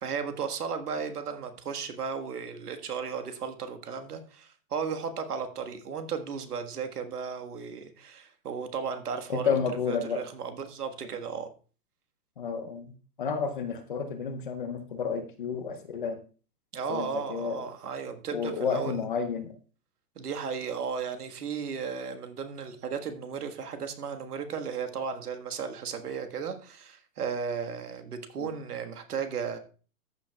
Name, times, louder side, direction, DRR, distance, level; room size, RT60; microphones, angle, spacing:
voice 1, 0.0-9.6 9.9-11.5 16.7-19.0 20.1-29.6, right 6 dB, 75° right, 7 dB, 1.6 m, -35 dB
voice 2, 9.3-10.2 12.4-16.2 16.9-17.7 18.3-19.5 28.4-28.5, left 6 dB, 35° left, 8 dB, 0.7 m, -31 dB
14.0 x 8.0 x 2.3 m, 0.37 s
hypercardioid pair, 165°, 46 cm